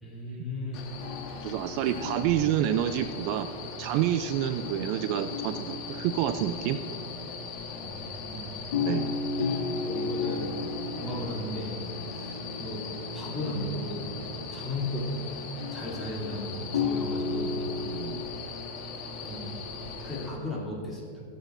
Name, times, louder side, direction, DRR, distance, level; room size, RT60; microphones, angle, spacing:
voice 1, 0.0-0.8 1.7-1.8 7.8-8.5 9.8-10.5 10.9-12.8 13.1-14.0 14.5-15.1 15.7-17.5 19.2-19.5 20.0-21.2, left 1 dB, 10° left, -6 dB, 2.9 m, -36 dB
sound 1, 0.6-4.2 4.6-7.9 8.7-14.8 15.6-18.2, left 4 dB, 90° left, 2.5 m, -35 dB
sound 2, 0.7-20.3, left 4 dB, 40° left, 1.4 m, -40 dB
voice 2, 1.4-3.5 3.8-6.8 8.8-9.1 17.9-18.3, right 11 dB, 45° right, 10 dB, 0.4 m, -28 dB
17.5 x 8.1 x 2.6 m, 2.3 s
supercardioid pair, 145°, 0 cm